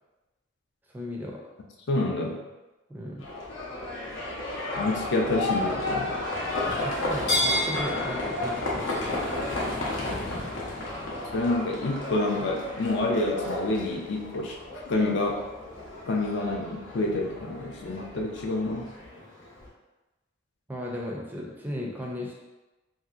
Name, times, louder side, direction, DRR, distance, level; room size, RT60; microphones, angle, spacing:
voice 1, 0.9-1.4 2.9-3.2 6.7-9.2 20.7-22.3, left 1 dB, 10° right, -2 dB, 0.4 m, -36 dB
voice 2, 1.9-2.4 4.8-6.1 11.3-14.6 14.9-15.4 16.1-18.9, left 2 dB, 65° left, 0 dB, 0.4 m, -28 dB
Livestock farm animals working animals, 3.2-19.7, left 1 dB, 90° left, 0.8 m, -32 dB
3.1 x 2.7 x 2.4 m, 1.1 s
head